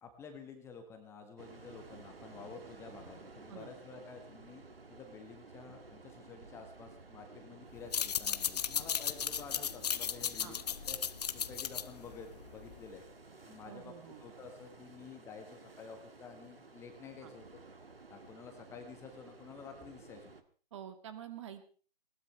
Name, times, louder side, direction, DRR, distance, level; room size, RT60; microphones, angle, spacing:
voice 1, 0.0-11.0 11.3-13.0 13.4-17.4 18.1-20.3, left 5 dB, 10° left, 5 dB, 1.6 m, -51 dB
sound 1, 1.4-20.4, right 3 dB, 75° right, 2.2 m, -54 dB
sound 2, 7.8-12.9, left 8 dB, 45° left, 0.9 m, -36 dB
voice 2, 13.6-14.2 17.2-17.3 20.7-21.7, right 9 dB, 30° right, 9 dB, 1.8 m, -47 dB
20.5 x 19.0 x 3.3 m, 0.39 s
figure-of-eight pair, 140°, 29 cm